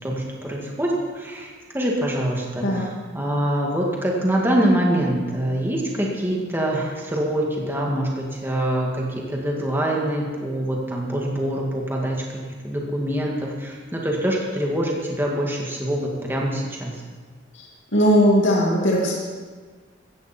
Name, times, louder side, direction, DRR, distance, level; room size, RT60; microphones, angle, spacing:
voice 1, 0.0-12.2 12.6-17.0, right 1 dB, 10° right, -2 dB, 2.1 m, -25 dB
voice 2, 17.9-19.1, equal, 75° left, -3 dB, 2.4 m, -18 dB
16.0 x 14.0 x 4.5 m, 1.5 s
head